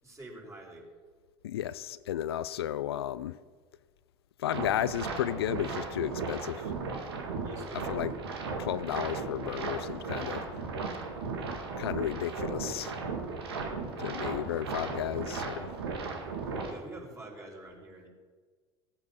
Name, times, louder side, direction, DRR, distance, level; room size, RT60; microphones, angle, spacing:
voice 1, 0.0-0.9 7.4-7.9 13.4-13.7 14.3-14.4 16.6-18.1, right 2 dB, 20° right, 5.0 m, -46 dB
voice 2, 1.4-3.4 4.4-6.7 7.7-8.2 8.6-10.5 11.8-13.0 14.0-15.7, left 11 dB, 85° left, 0.4 m, -33 dB
sound 1, 4.5-16.7, right 4 dB, 85° right, 1.9 m, -36 dB
16.0 x 8.8 x 6.3 m
hypercardioid pair, 80°, 13 cm